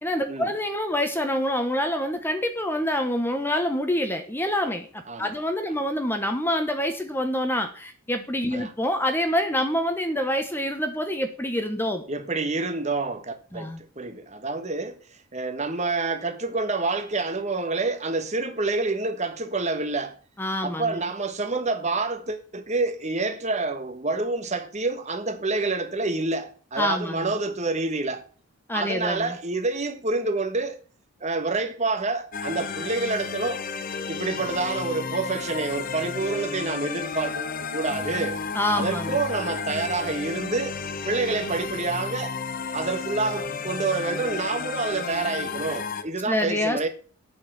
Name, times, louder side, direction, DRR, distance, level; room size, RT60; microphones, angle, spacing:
voice 1, 0.0-4.9 5.2-12.0 13.5-13.8 20.4-20.9 26.8-27.2 28.7-29.3 38.5-39.2 46.3-46.9, left 1 dB, 10° left, 1.0 m, -26 dB
voice 2, 5.1-5.4 8.5-8.7 12.1-15.0 15.3-20.2 20.6-28.2 28.7-30.8 31.2-33.6 34.1-38.4 38.7-40.8 41.0-42.4 42.7-46.9, right 3 dB, 30° right, 1.3 m, -28 dB
sound 1, 32.3-46.0, left 5 dB, 40° left, 0.8 m, -32 dB
8.5 x 6.5 x 8.0 m
head